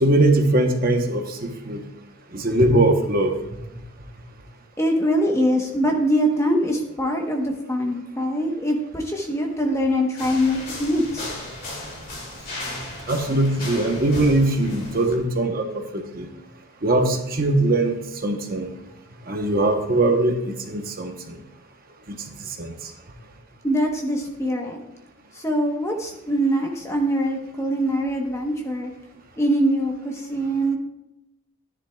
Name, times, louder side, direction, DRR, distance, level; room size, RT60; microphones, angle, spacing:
voice 1, 0.0-1.8 2.3-3.3 13.1-15.7 15.9-16.3 16.8-18.7 19.3-21.4 22.1-22.2 22.6-22.7, right 2 dB, 40° right, 4 dB, 1.0 m, -21 dB
voice 2, 4.8-11.3 23.6-24.8 25.3-28.9 29.4-30.8, equal, 15° left, 2 dB, 1.0 m, -23 dB
sound 1, 10.1-15.2, left 1 dB, 40° left, 2.6 m, -35 dB
13.5 x 10.0 x 2.3 m, 0.87 s
head